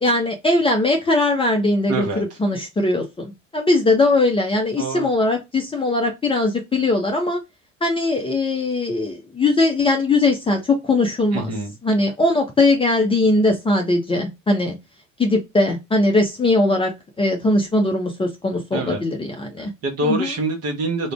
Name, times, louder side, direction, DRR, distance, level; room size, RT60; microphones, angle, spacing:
voice 1, 0.0-7.4 7.8-11.4 11.8-14.8 15.2-16.9 17.2-19.7 20.0-20.3, left 2 dB, 15° left, 0.6 m, -20 dB
voice 2, 1.9-2.2 4.8-5.1 11.3-11.7 18.7-19.0 19.6-21.1, right 2 dB, 40° right, 1.0 m, -25 dB
2.4 x 2.1 x 3.2 m
figure-of-eight pair, 65°, 39 cm